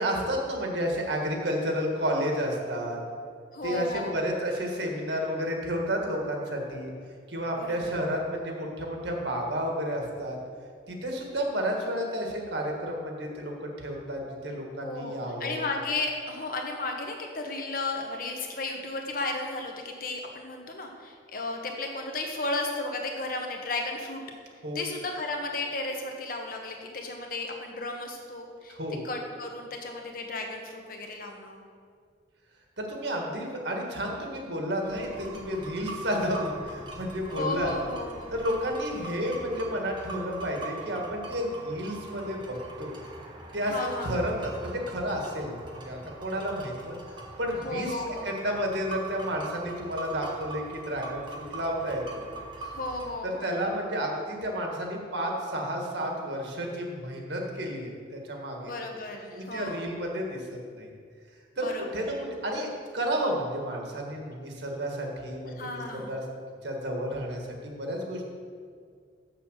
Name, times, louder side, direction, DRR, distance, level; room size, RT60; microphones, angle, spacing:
voice 1, 0.0-3.0 3.6-6.9 7.3-10.4 10.9-15.6 24.6-24.9 28.7-29.0 32.8-37.7 38.3-42.9 43.5-52.3 53.2-58.7 59.3-60.9 61.6-62.1 62.4-62.7 62.9-66.2 66.6-68.3, equal, 65° right, 0 dB, 1.8 m, -31 dB
voice 2, 3.5-4.3 7.6-7.8 14.8-24.2 24.7-28.8 29.0-31.6 37.3-38.3 43.7-44.3 47.6-48.3 52.6-53.5 58.6-59.9 61.6-62.1 65.6-66.1, left 2 dB, 45° left, 2 dB, 1.2 m, -34 dB
sound 1, 34.8-53.1, right 3 dB, 25° right, 1.3 m, -42 dB
7.5 x 6.8 x 6.5 m, 2.1 s
head